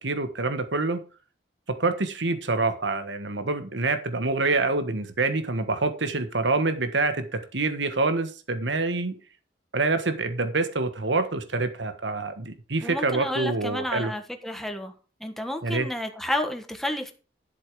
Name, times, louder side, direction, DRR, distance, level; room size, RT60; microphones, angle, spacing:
voice 1, 0.0-1.0 1.8-9.2 9.7-14.1 15.6-15.9, right 3 dB, 85° right, 1.4 m, -26 dB
voice 2, 12.8-14.9 15.2-17.1, left 1 dB, ahead, 1.4 m, -31 dB
11.5 x 7.4 x 4.9 m
head